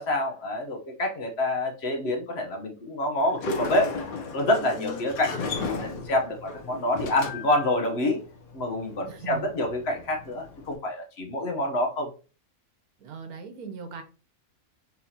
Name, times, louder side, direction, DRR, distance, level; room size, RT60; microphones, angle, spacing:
voice 1, 0.0-4.0 4.3-6.4 6.6-8.2 8.5-12.1, left 1 dB, 50° left, 3 dB, 1.0 m, -27 dB
Sliding door, 3.2-10.7, left 4 dB, 75° left, 1.3 m, -36 dB
voice 2, 4.6-5.1 9.1-9.5 13.0-14.0, right 3 dB, 90° right, 7 dB, 1.3 m, -39 dB
4.5 x 4.0 x 2.8 m, 0.35 s
omnidirectional pair, 1.5 m